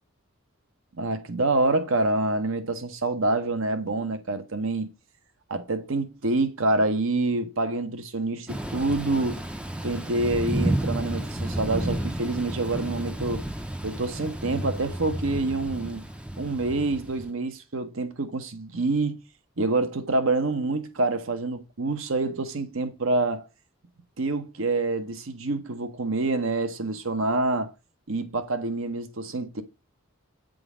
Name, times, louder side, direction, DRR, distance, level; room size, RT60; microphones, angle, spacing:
voice 1, 0.9-4.9 5.5-9.4 9.8-13.4 13.8-16.0 16.4-19.2 19.6-23.5 24.2-27.7 28.1-29.6, right 2 dB, 65° right, 1.0 m, -27 dB
Thunder / Rain, 8.5-17.3, right 1 dB, 5° right, 0.5 m, -31 dB
8.3 x 3.8 x 4.9 m
head